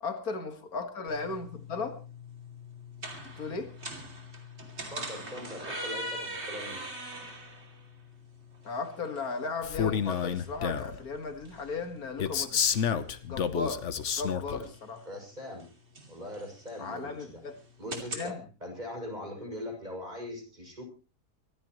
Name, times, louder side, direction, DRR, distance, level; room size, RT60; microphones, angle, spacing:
voice 1, 0.0-2.0 3.2-3.7 8.6-12.9 13.3-13.8 14.2-15.0 16.8-17.6 17.9-18.4, left 4 dB, 80° left, 7 dB, 2.2 m, -36 dB
sound 1, 1.1-18.3, right 1 dB, 45° right, 3.1 m, -43 dB
voice 2, 4.9-6.8 14.5-14.6 15.1-15.7 16.1-17.4 17.8-20.8, left 1 dB, 30° right, 1 dB, 6.6 m, -41 dB
Male speech man speaking, 9.6-11.0 12.2-14.6, left 8 dB, 55° left, 1.2 m, -29 dB
24.5 x 14.5 x 3.1 m, 0.33 s
omnidirectional pair, 1.6 m